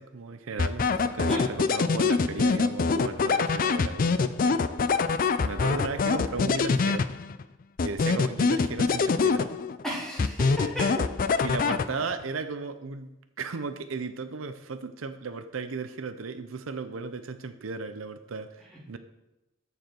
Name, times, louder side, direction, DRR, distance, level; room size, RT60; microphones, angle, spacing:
voice 1, 0.0-4.6 5.4-7.0 7.8-9.5 11.4-13.1 13.4-19.0, right 4 dB, 85° right, 10 dB, 0.6 m, -35 dB
sound 1, 0.6-7.4 7.8-9.8 10.2-12.2, left 4 dB, 45° left, 0.4 m, -25 dB
voice 2, 9.8-11.0 11.3-11.5, equal, 5° left, -7 dB, 3.0 m, -34 dB
14.0 x 4.9 x 4.5 m, 0.98 s
head